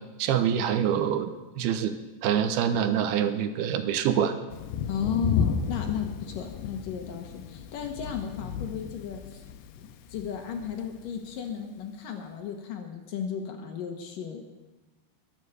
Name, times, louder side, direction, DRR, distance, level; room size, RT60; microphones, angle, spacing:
voice 1, 0.2-1.9 2.2-4.4, right 9 dB, 75° right, 9 dB, 2.8 m, -25 dB
Thunder, 4.5-11.3, left 7 dB, 85° left, 2.9 m, -33 dB
voice 2, 4.9-9.4 10.1-14.4, left 7 dB, 65° left, 4 dB, 2.9 m, -34 dB
22.0 x 7.5 x 8.0 m, 1.1 s
omnidirectional pair, 4.7 m